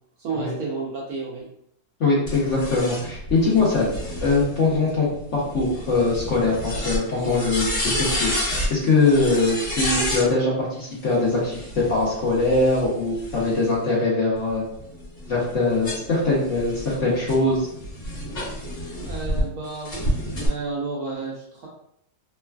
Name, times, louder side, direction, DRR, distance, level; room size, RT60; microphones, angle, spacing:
voice 1, 0.2-1.5 19.1-21.7, right 3 dB, 70° right, -3 dB, 0.9 m, -31 dB
voice 2, 2.0-3.9 4.2-14.6 15.3-17.7, left 3 dB, 55° left, -7 dB, 0.8 m, -22 dB
sound 1, 2.3-10.3 11.4-13.8 14.4-19.4 19.8-20.5, equal, 35° left, 1.3 m, -30 dB
3.1 x 2.3 x 2.3 m, 0.71 s
omnidirectional pair, 2.0 m